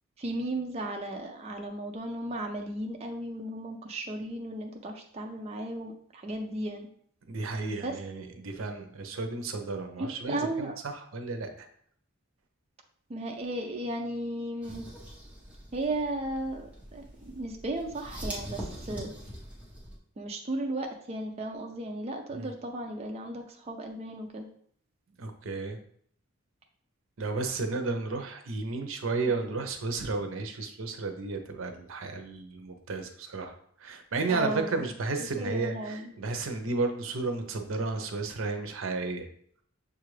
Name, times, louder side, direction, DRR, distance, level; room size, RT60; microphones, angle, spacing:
voice 1, 0.2-6.9 7.8-8.0 8.5-8.6 10.0-10.7 13.1-14.8 15.7-19.1 20.2-24.5 34.3-34.9 35.4-36.1, right 1 dB, 30° right, 2 dB, 0.4 m, -35 dB
voice 2, 7.3-11.7 22.3-22.5 25.2-25.8 27.2-39.3, right 3 dB, 75° right, 6 dB, 0.6 m, -33 dB
sound 1, 14.6-20.0, equal, 5° right, 0.9 m, -43 dB
6.5 x 2.4 x 3.1 m, 0.63 s
head